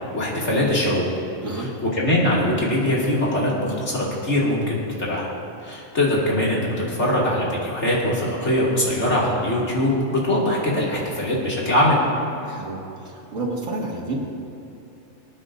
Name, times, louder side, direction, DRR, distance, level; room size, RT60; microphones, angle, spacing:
voice 1, 0.1-1.0 1.6-1.7 1.9-5.3 5.6-12.0, left 1 dB, 60° left, -5 dB, 2.9 m, -22 dB
voice 2, 12.4-14.2, right 2 dB, 75° right, -3 dB, 2.4 m, -30 dB
25.0 x 9.2 x 2.6 m, 2.7 s
omnidirectional pair, 1.4 m